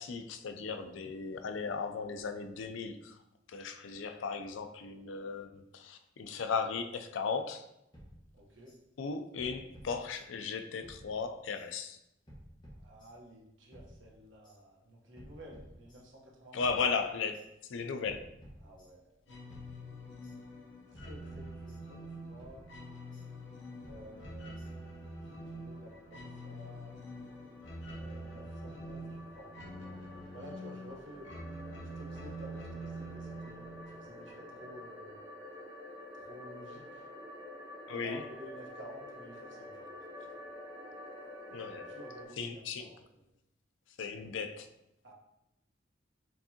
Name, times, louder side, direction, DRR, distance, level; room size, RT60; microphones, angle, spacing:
voice 1, 0.0-3.2 3.5-7.7 9.0-12.0 16.5-17.4 17.7-18.3 37.9-38.2 41.5-41.9 42.4-42.9 44.0-44.7, left 5 dB, 85° left, 8 dB, 0.4 m, -36 dB
sound 1, 7.9-8.8 9.4-10.5 10.8-11.7 12.3-13.4 13.7-14.6 15.2-16.3 16.6-17.5 18.0-19.2 19.5-20.4 20.9-22.1 22.4-23.3 23.8-25.0, equal, 25° left, 1.3 m, -55 dB
voice 2, 8.3-8.7 12.7-16.8 18.6-19.2 20.9-22.6 23.8-24.8 25.2-26.9 27.7-29.6 30.3-31.3 31.9-35.2 36.1-37.1 37.9-40.2 41.7-43.2 45.0-45.1, right 1 dB, 75° right, -2 dB, 1.1 m, -52 dB
sound 2, 19.3-34.8, right 1 dB, 70° left, 0.8 m, -46 dB
sound 3, 25.0-42.2, left 1 dB, 20° right, 1.1 m, -49 dB
4.5 x 3.6 x 2.8 m, 0.84 s
head